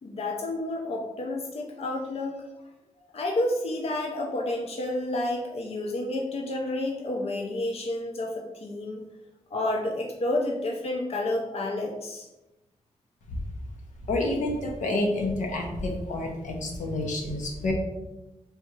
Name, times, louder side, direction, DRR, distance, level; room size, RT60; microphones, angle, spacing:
voice 1, 0.0-2.4 3.1-9.0 9.5-12.3, left 1 dB, 55° left, 0 dB, 0.6 m, -30 dB
voice 2, 14.1-17.7, left 2 dB, 90° left, 1 dB, 0.9 m, -28 dB
3.5 x 2.7 x 4.5 m, 0.98 s
wide cardioid pair, 110°, 12 cm